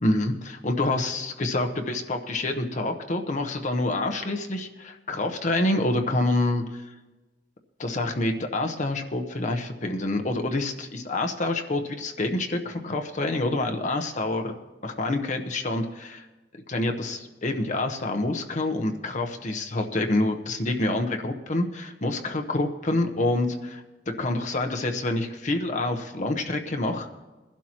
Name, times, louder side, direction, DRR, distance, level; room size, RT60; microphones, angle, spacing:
voice 1, 0.0-6.6 7.8-14.5 14.8-16.2 16.7-27.2, left 2 dB, 45° left, 4 dB, 0.9 m, -27 dB
21.0 x 11.5 x 3.0 m, 1.2 s
head